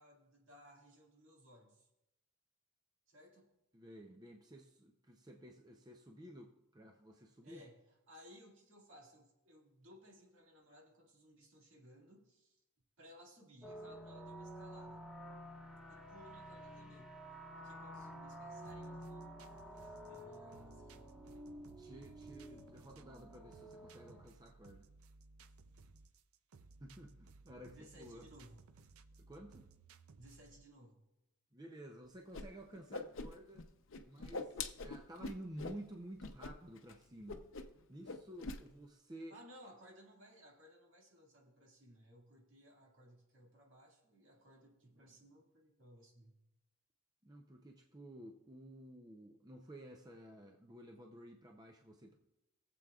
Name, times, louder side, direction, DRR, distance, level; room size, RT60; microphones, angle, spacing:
voice 1, 0.0-1.9 3.1-3.5 7.4-12.6 13.0-15.1 15.9-17.2 17.5-21.4 27.7-28.6 30.2-31.0 39.3-46.3, equal, 65° right, -1 dB, 2.2 m, -60 dB
voice 2, 3.7-7.6 21.8-24.9 26.8-28.3 29.3-29.7 31.5-33.7 34.0-37.5 37.9-39.3 47.2-52.2, right 1 dB, 20° right, 2 dB, 0.6 m, -53 dB
sound 1, 13.6-24.3, equal, ahead, 1.2 m, -51 dB
sound 2, 18.6-30.7, right 3 dB, 85° right, 0.6 m, -61 dB
Whoosh swoosh swish, 32.3-32.4 32.7-33.6 33.9-35.8 36.2-36.5 36.8-36.9 37.3-37.8 38.0-38.6, left 3 dB, 60° left, 0.6 m, -43 dB
20.0 x 7.6 x 2.4 m, 0.91 s
head